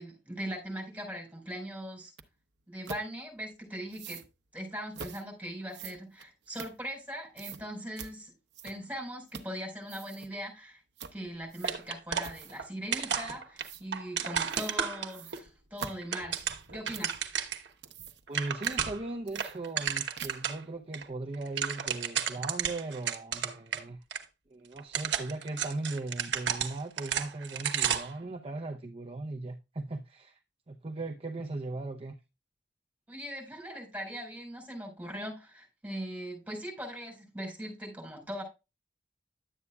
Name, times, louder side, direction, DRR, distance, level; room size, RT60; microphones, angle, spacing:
voice 1, 0.0-2.1 2.7-4.2 4.5-8.3 8.6-10.8 11.1-16.4 16.7-17.2 33.1-38.4, equal, 10° right, 4.5 m, -40 dB
sound 1, 2.2-2.3 2.8-3.0 3.9-4.3 4.9-5.2 5.7-7.1 7.4-7.6 8.0-8.1 8.5-9.0 9.3-9.6 9.8-10.3 11.0-11.2 11.5-11.9 12.2-12.7 13.6-13.8 14.5-14.8 15.1-17.2 17.6-18.4 18.6-18.8 19.3-19.9 20.2-20.5, right 6 dB, 70° right, 0.8 m, -44 dB
sound 2, 11.6-12.7 12.9-15.4 15.9-17.7 18.0-18.1 18.3-19.1 19.4-20.6 20.9-21.0 21.3-23.8 24.1-24.2 24.8-28.2, right 8 dB, 90° right, 1.0 m, -32 dB
voice 2, 18.3-24.0 24.5-30.4 30.7-32.2, right 2 dB, 35° right, 0.6 m, -38 dB
11.0 x 8.2 x 2.3 m
head